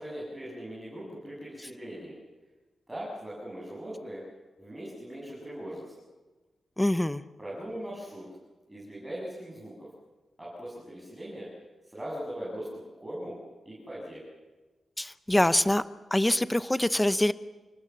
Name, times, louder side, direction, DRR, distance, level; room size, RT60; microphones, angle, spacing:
voice 1, 0.0-2.2 2.9-4.2 4.6-5.9 7.4-8.3 8.7-9.7 10.4-11.5 11.8-13.4 13.6-14.2, equal, 10° right, -7 dB, 8.0 m, -40 dB
voice 2, 6.8-7.2 15.0-15.8 16.1-17.3, left 1 dB, 10° left, 13 dB, 0.7 m, -24 dB
29.0 x 19.0 x 7.5 m, 1.2 s
wide cardioid pair, 135°, 0 cm